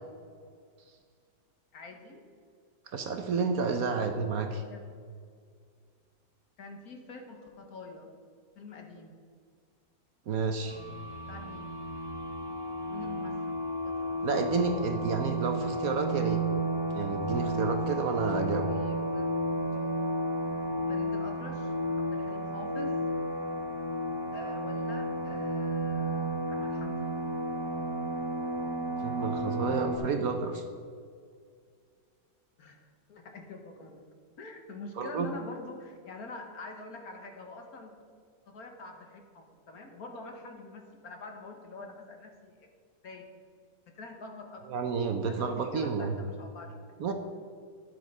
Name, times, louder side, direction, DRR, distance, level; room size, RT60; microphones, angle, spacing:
voice 1, 1.7-2.2 4.5-4.8 6.6-8.1 8.6-9.1 11.3-11.7 12.9-13.4 13.8-14.1 18.6-19.9 20.9-23.0 24.3-27.1 32.6-32.8 33.1-34.0 34.4-37.9 38.5-42.7 43.0-43.3 43.9-44.6 45.3-46.8, left 3 dB, 60° left, 3 dB, 1.6 m, -45 dB
voice 2, 2.9-4.6 10.3-10.8 14.2-16.4 16.9-18.7 29.0-30.6 35.0-35.3 44.7-46.1 47.0-47.1, right 5 dB, 60° right, 6 dB, 1.1 m, -30 dB
sound 1, 10.7-30.0, right 1 dB, 15° right, 1.2 m, -32 dB
11.0 x 7.7 x 5.4 m, 2.1 s
omnidirectional pair, 1.9 m